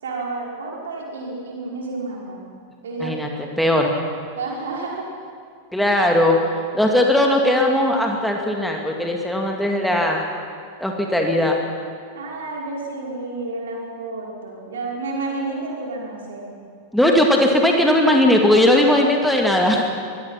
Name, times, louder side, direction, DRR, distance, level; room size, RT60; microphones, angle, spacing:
voice 1, 0.0-2.4 2.8-3.2 4.4-5.1 12.2-16.5 18.9-19.1, right 3 dB, 65° right, -2 dB, 5.5 m, -30 dB
voice 2, 3.6-4.0 5.7-10.2 10.8-11.6 16.9-19.9, left 1 dB, ahead, 1 dB, 2.3 m, -18 dB
24.0 x 21.0 x 5.9 m, 2.3 s
figure-of-eight pair, 90°, 0 cm